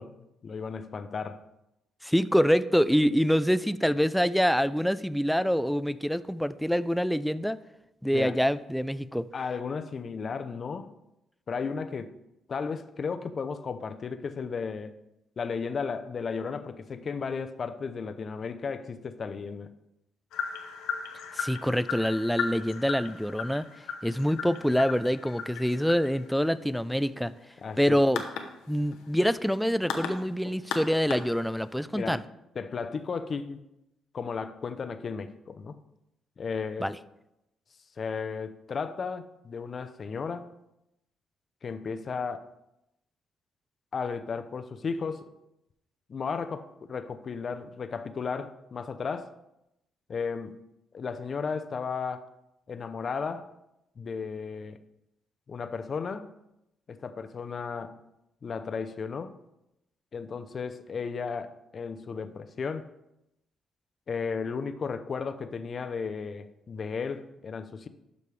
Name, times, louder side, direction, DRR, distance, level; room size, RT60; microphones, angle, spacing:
voice 1, 0.0-1.5 8.1-8.4 9.3-10.9 11.5-12.2 12.5-14.9 15.4-19.7 27.6-28.0 31.9-32.2 32.6-33.6 34.1-35.8 36.4-36.9 38.0-40.5 41.6-42.5 43.9-45.3 46.1-49.3 50.1-50.6 50.9-52.3 52.7-53.5 54.0-54.8 55.5-56.3 56.9-58.0 58.4-59.4 60.1-62.9 64.1-67.9, left 5 dB, 45° left, 11 dB, 0.6 m, -34 dB
voice 2, 2.0-7.6 8.0-9.3 21.3-23.7 24.0-27.3 27.8-28.2 28.7-32.2 36.8-37.0, equal, ahead, 14 dB, 0.3 m, -25 dB
sound 1, 20.3-31.8, left 6 dB, 90° left, 0.8 m, -37 dB
12.0 x 5.2 x 3.3 m, 0.87 s
cardioid pair, 90°, 0 cm